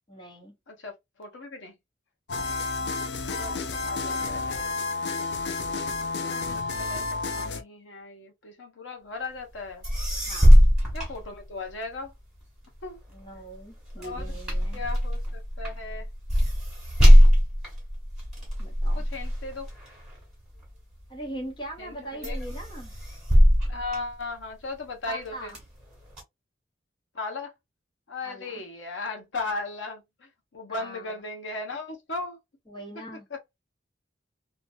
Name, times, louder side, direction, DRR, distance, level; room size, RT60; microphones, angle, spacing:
voice 1, 0.1-0.6 10.3-10.6 13.1-14.8 18.6-19.0 21.1-22.9 25.0-25.6 28.2-28.6 30.7-31.2 32.7-33.2, right 1 dB, 25° left, 1.1 m, -41 dB
voice 2, 1.2-1.7 2.8-4.8 6.2-9.8 10.9-12.1 12.8-13.0 14.0-14.3 14.7-16.1 19.0-19.7 21.8-22.4 23.7-25.5 27.1-27.5 28.1-32.4, left 3 dB, 80° left, 0.9 m, -37 dB
sound 1, 2.3-7.6, left 3 dB, 60° left, 0.5 m, -30 dB
sound 2, 9.6-9.7 9.8-11.9 12.4-21.1 21.6-21.9 22.2-24.7 25.2-26.2, equal, 5° right, 1.7 m, -21 dB
2.8 x 2.5 x 2.6 m
head